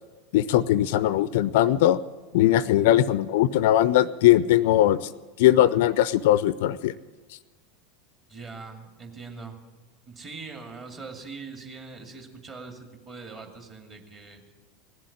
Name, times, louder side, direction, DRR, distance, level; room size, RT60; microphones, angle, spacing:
voice 1, 0.3-2.0 2.3-5.1 5.4-7.0, left 13 dB, 55° left, 19 dB, 0.4 m, -20 dB
voice 2, 2.6-3.0 8.3-9.6 10.1-14.4, right 4 dB, 30° right, 4 dB, 2.3 m, -42 dB
17.5 x 7.6 x 9.7 m, 1.2 s
figure-of-eight pair, 80°, 0 cm